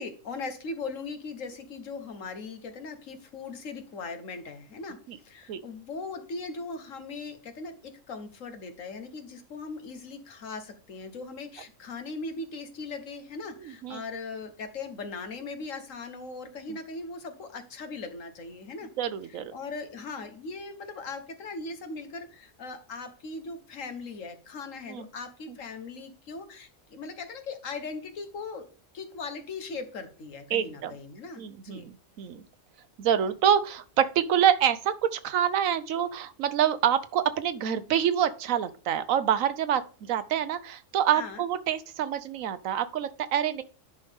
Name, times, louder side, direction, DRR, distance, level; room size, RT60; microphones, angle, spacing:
voice 1, 0.0-18.9 19.2-28.7 28.9-31.8 41.1-41.4, left 4 dB, 75° left, 1.6 m, -39 dB
voice 2, 19.0-19.5 24.9-25.1 30.5-30.9 31.4-31.9 32.2-32.4 33.0-43.6, right 9 dB, 90° right, 1.2 m, -26 dB
10.0 x 5.5 x 3.6 m
omnidirectional pair, 1.4 m